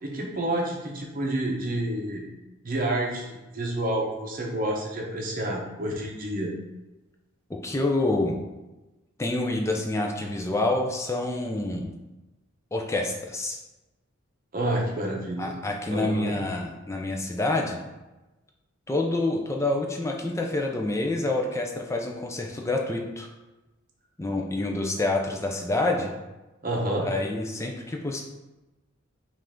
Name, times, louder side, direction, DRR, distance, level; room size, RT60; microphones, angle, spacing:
voice 1, 0.0-2.2 2.6-6.5 14.5-15.5 15.9-16.3 26.6-27.1, right 1 dB, 40° right, -1 dB, 0.7 m, -29 dB
voice 2, 7.5-8.4 9.2-11.9 12.7-13.6 15.4-17.8 18.9-23.3 24.2-26.1 27.0-28.2, left 2 dB, 15° left, 1 dB, 0.4 m, -27 dB
5.4 x 2.5 x 3.6 m, 1.1 s
head